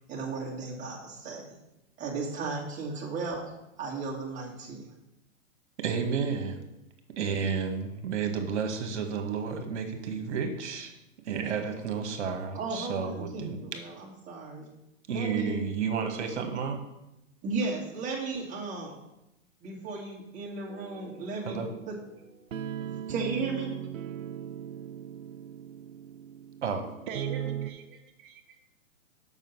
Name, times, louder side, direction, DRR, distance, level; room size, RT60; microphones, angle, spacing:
voice 1, 0.1-1.6 2.0-3.4 3.8-4.9 12.5-14.7 15.1-15.6 17.4-19.0 19.6-21.6 21.9-22.0 23.1-23.7, right 3 dB, 20° right, -3 dB, 2.3 m, -35 dB
voice 2, 5.8-6.6 7.2-10.9 11.2-13.6 15.1-16.8 21.4-21.7 26.6-26.9, right 6 dB, 60° right, 5 dB, 1.7 m, -31 dB
sound 1, 20.7-27.7, right 10 dB, 75° right, 0.7 m, -39 dB
voice 3, 27.1-28.6, right 6 dB, 40° right, 4 dB, 1.4 m, -40 dB
7.3 x 5.8 x 5.6 m, 0.90 s
hypercardioid pair, 120°, 39 cm